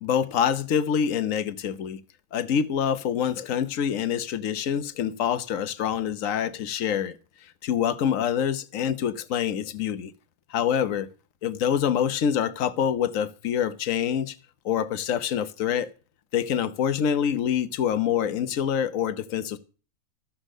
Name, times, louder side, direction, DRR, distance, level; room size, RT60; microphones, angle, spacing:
voice 1, 0.0-2.0 2.3-7.2 7.6-10.1 10.5-11.1 11.4-14.4 14.6-15.9 16.3-19.6, left 8 dB, 65° left, 1.3 m, -26 dB
13.5 x 7.5 x 6.3 m
omnidirectional pair, 1.5 m